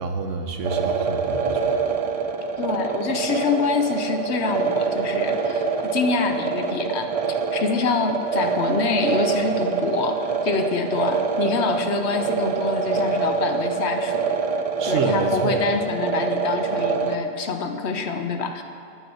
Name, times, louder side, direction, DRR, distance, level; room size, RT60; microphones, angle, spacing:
voice 1, 0.0-1.8 14.8-15.6, right 3 dB, 85° right, 5 dB, 1.3 m, -28 dB
sound 1, 0.6-17.2, right 5 dB, 45° right, 0.5 m, -25 dB
voice 2, 2.6-7.1 7.5-14.3 14.9-18.6, left 5 dB, 65° left, 6 dB, 1.1 m, -26 dB
9.4 x 9.3 x 6.4 m, 2.5 s
omnidirectional pair, 1.2 m